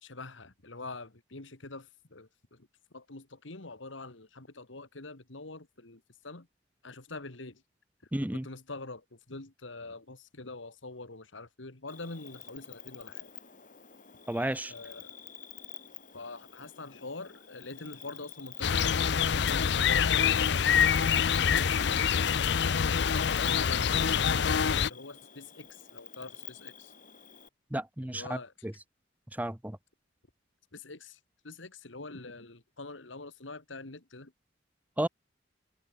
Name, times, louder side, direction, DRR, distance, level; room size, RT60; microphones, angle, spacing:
voice 1, 0.0-2.7 2.9-6.5 6.8-7.6 8.3-13.3 14.7-15.2 16.1-22.0 22.9-26.9 28.0-28.5 30.7-31.2 31.4-34.3, left 3 dB, 90° left, 2.3 m, -45 dB
voice 2, 8.1-8.5 14.3-14.7 27.7-28.7 29.3-29.8 35.0-35.1, right 1 dB, 10° right, 0.8 m, -33 dB
Cricket, 11.9-27.5, left 9 dB, 45° left, 6.0 m, -50 dB
sound 1, 18.6-24.9, left 7 dB, 60° left, 0.5 m, -25 dB
head